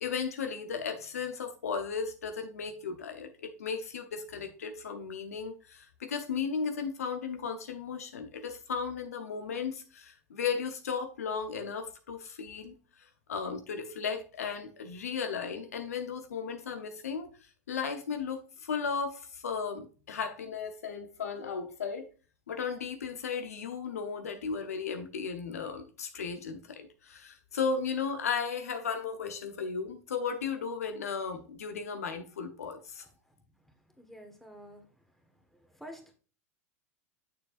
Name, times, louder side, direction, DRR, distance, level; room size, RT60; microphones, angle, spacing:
voice 1, 0.0-17.3 17.7-22.1 22.5-33.0, left 6 dB, 85° left, 0.9 m, -35 dB
voice 2, 34.0-34.9 35.6-36.1, equal, 5° left, 1.6 m, -48 dB
6.7 x 6.6 x 2.5 m
hypercardioid pair, 95°, 8 cm